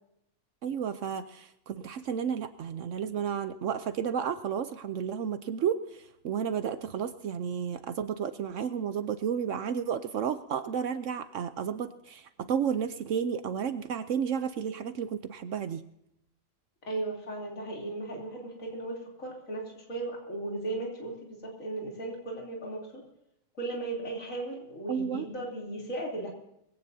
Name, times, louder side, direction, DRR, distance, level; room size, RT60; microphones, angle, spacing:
voice 1, 0.6-15.8 24.9-25.3, right 7 dB, 70° right, 11 dB, 1.0 m, -32 dB
voice 2, 16.8-23.0 23.6-26.3, right 2 dB, 75° left, -2 dB, 3.6 m, -36 dB
22.0 x 17.0 x 2.7 m, 0.79 s
omnidirectional pair, 1.4 m